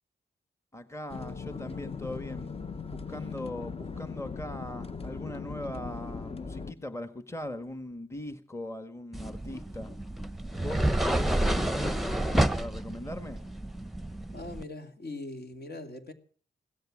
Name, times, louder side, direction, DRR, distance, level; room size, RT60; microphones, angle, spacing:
voice 1, 0.7-9.9 10.6-10.8 11.1-13.4, left 1 dB, 15° left, 1.6 m, -40 dB
sound 1, 1.1-6.7, left 5 dB, 35° left, 0.9 m, -39 dB
sound 2, 9.1-14.6, right 1 dB, ahead, 1.0 m, -29 dB
voice 2, 14.3-16.1, left 2 dB, 60° left, 2.6 m, -41 dB
17.0 x 13.0 x 6.2 m
cardioid pair, 65°, 18 cm